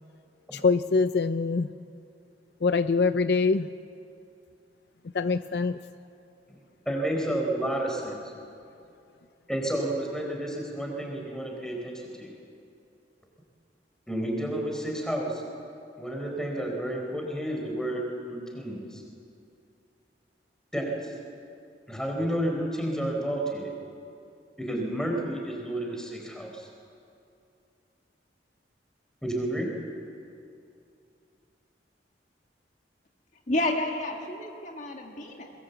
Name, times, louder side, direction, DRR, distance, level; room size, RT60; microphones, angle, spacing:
voice 1, 0.5-1.7 2.6-3.7 5.1-5.8, left 4 dB, 60° left, 11 dB, 0.5 m, -24 dB
voice 2, 6.9-8.2 9.5-12.3 14.1-15.4 16.0-19.0 20.7-20.9 21.9-23.7 24.6-26.7 29.2-29.7, right 1 dB, 5° left, 1 dB, 4.1 m, -31 dB
voice 3, 33.5-35.5, left 1 dB, 40° left, 2 dB, 1.8 m, -30 dB
23.0 x 22.0 x 8.1 m, 2.6 s
head